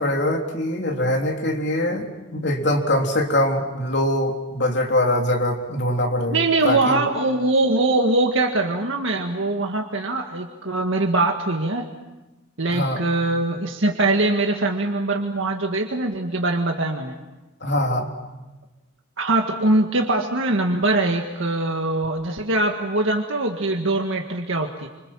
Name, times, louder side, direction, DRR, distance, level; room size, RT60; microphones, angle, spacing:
voice 1, 0.0-7.0 12.7-13.0 17.6-18.1, left 1 dB, 55° left, 2 dB, 3.5 m, -23 dB
voice 2, 6.3-11.9 12.6-17.2 19.2-24.9, right 2 dB, 75° right, 2 dB, 1.8 m, -22 dB
28.5 x 26.0 x 7.5 m, 1.1 s
head